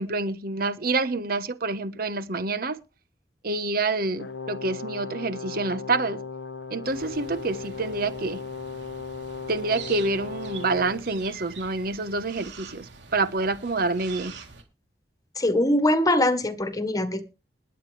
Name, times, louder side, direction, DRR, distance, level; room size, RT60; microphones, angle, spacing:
voice 1, 0.0-2.8 3.4-6.2 6.7-8.4 9.5-14.3, right 3 dB, 60° right, 1.1 m, -27 dB
Brass instrument, 4.2-11.1, left 4 dB, 85° left, 0.9 m, -37 dB
sound 1, 6.8-14.6, right 6 dB, 85° right, 3.3 m, -45 dB
voice 2, 15.4-17.2, left 1 dB, 20° left, 1.5 m, -22 dB
21.0 x 8.9 x 3.4 m
head